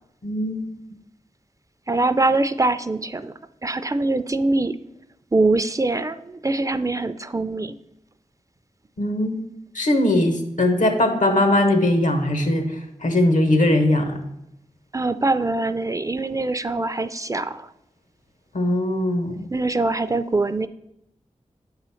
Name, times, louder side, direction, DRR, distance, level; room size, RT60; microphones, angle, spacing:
voice 1, 0.2-0.7 9.0-9.4 9.7-14.2 18.5-19.5, left 1 dB, 85° left, 6 dB, 1.1 m, -20 dB
voice 2, 1.9-3.3 3.6-4.8 5.3-7.7 14.9-17.7 19.5-20.7, right 2 dB, 25° right, 12 dB, 0.3 m, -23 dB
8.0 x 4.0 x 5.6 m, 0.81 s
wide cardioid pair, 85°, 13 cm